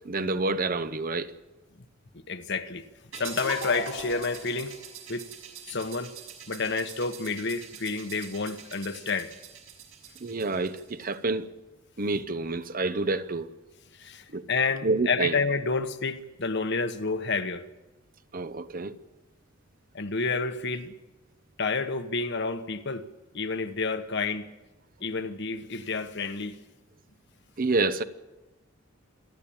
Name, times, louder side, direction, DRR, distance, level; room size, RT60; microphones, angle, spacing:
voice 1, 0.0-1.3 10.2-11.5 12.0-13.5 14.3-14.4 14.8-15.4 18.3-18.9 27.6-28.0, right 3 dB, 45° right, 0.9 m, -28 dB
voice 2, 2.3-2.8 3.1-4.8 5.1-5.3 5.7-6.1 6.5-9.3 13.9-17.6 19.9-20.9 21.6-23.1 23.3-24.5 25.0-26.6, left 4 dB, 60° left, 1.2 m, -29 dB
sound 1, 3.1-11.2, right 4 dB, 85° right, 6.0 m, -42 dB
28.0 x 10.5 x 8.8 m
head